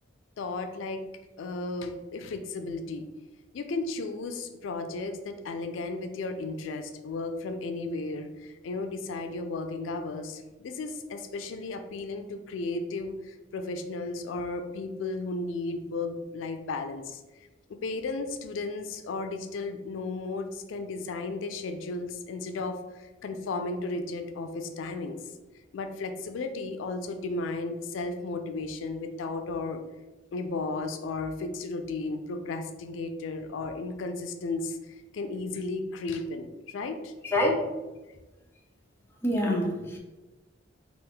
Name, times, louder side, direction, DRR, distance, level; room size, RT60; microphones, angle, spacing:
voice 1, 0.4-1.0 1.4-3.1 3.5-17.2 17.7-25.2 25.7-29.8 30.3-37.1, left 3 dB, 90° left, 7 dB, 0.4 m, -34 dB
voice 2, 37.2-37.6 39.2-40.0, left 1 dB, 15° left, -2 dB, 0.5 m, -26 dB
3.4 x 2.4 x 3.6 m, 1.1 s
head